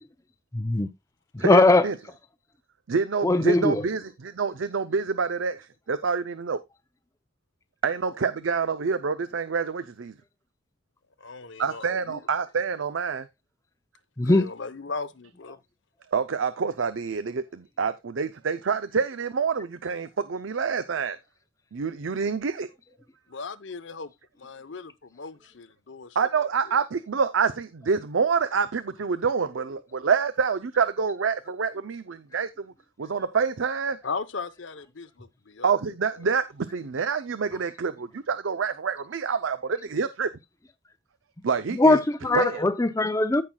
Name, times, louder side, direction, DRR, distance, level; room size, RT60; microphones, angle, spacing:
voice 1, 0.5-0.9 1.3-1.9 3.2-3.9 14.2-14.5 41.7-43.4, left 2 dB, 15° left, 0.6 m, -20 dB
voice 2, 1.4-1.9 2.9-6.6 7.8-10.1 11.6-13.3 16.1-21.2 21.7-22.7 26.2-32.7 33.0-34.0 35.6-40.3 41.4-42.0 42.3-42.6, right 5 dB, 75° right, 0.6 m, -27 dB
voice 3, 11.2-12.2 14.2-15.6 23.3-24.1 24.4-26.5 34.0-36.3, left 4 dB, 65° left, 0.8 m, -38 dB
15.0 x 5.8 x 2.3 m
head